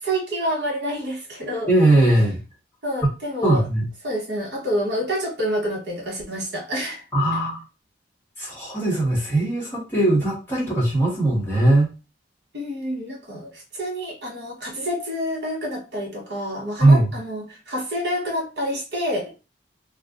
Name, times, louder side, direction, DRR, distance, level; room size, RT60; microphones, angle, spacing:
voice 1, 0.0-1.7 2.8-3.6 4.0-7.0 12.5-19.4, equal, 70° right, -1 dB, 1.2 m, -28 dB
voice 2, 1.7-2.4 3.0-3.1 3.4-3.9 7.1-7.6 8.4-11.9 16.8-17.2, right 1 dB, 15° left, -5 dB, 1.2 m, -19 dB
2.5 x 2.3 x 3.7 m, 0.31 s
head